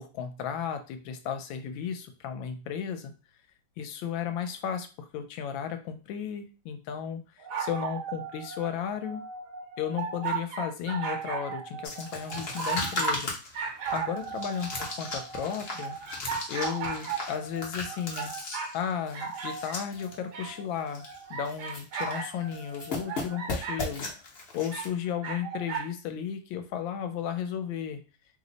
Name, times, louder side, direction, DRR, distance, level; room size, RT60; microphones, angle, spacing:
voice 1, 0.0-3.1 3.8-9.2 9.8-13.3 13.9-14.7 15.0-16.0 16.5-18.3 18.7-21.0 21.3-24.3 24.5-28.0, left 8 dB, 85° left, 7 dB, 1.3 m, -34 dB
sound 1, 7.4-13.2 13.5-18.8 19.1-23.8 24.7-25.9, right 6 dB, 70° right, 1.1 m, -36 dB
sound 2, 11.8-20.1 20.4-20.5 20.9-21.2 21.4-22.2 22.5-24.9, left 2 dB, 60° left, 0.6 m, -36 dB
3.2 x 2.0 x 3.8 m, 0.32 s
omnidirectional pair, 2.1 m